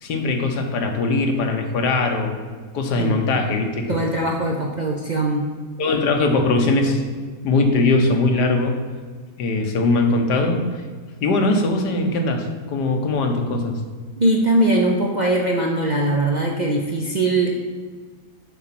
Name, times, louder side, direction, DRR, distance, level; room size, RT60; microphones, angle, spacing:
voice 1, 0.0-2.4 2.7-4.0 5.8-7.0 7.4-8.8 9.4-10.8 11.2-13.8, left 2 dB, 85° left, 4 dB, 1.6 m, -20 dB
voice 2, 3.9-5.4 14.2-17.5, right 1 dB, 65° right, 0 dB, 0.4 m, -21 dB
7.1 x 4.9 x 5.9 m, 1.5 s
omnidirectional pair, 1.7 m